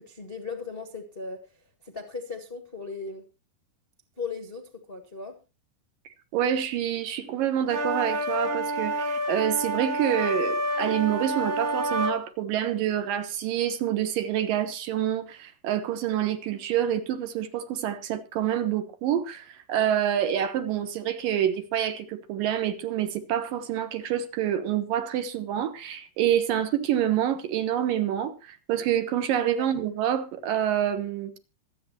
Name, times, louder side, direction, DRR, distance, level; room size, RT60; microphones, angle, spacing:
voice 1, 0.0-1.4 1.8-3.2 4.2-5.4 29.6-29.7, left 4 dB, 60° left, 0.5 m, -37 dB
voice 2, 6.3-31.3, right 10 dB, 65° right, 2.6 m, -27 dB
sound 1, 7.7-12.2, right 1 dB, 50° right, 3.3 m, -28 dB
25.0 x 8.6 x 2.9 m
omnidirectional pair, 4.6 m